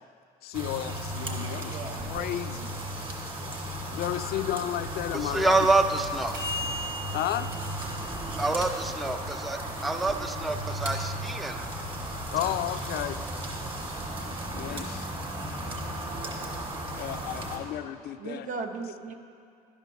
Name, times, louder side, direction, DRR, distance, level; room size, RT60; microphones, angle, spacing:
voice 1, 0.4-2.8 3.9-5.7 7.1-7.5 12.3-13.2 14.5-15.1 16.9-18.5, left 12 dB, 70° left, 11 dB, 0.4 m, -33 dB
sound 1, 0.5-17.6, right 1 dB, 30° right, 1.9 m, -35 dB
voice 2, 1.7-2.1 17.7-17.8 18.2-19.1, right 4 dB, 50° right, 5 dB, 0.8 m, -37 dB
sound 2, 2.1-10.1, left 1 dB, 75° right, 2.6 m, -41 dB
voice 3, 5.1-6.4 8.4-11.6 14.7-14.8, right 2 dB, ahead, 7 dB, 0.3 m, -27 dB
11.0 x 5.2 x 6.4 m, 2.4 s
cardioid pair, 110°, 17 cm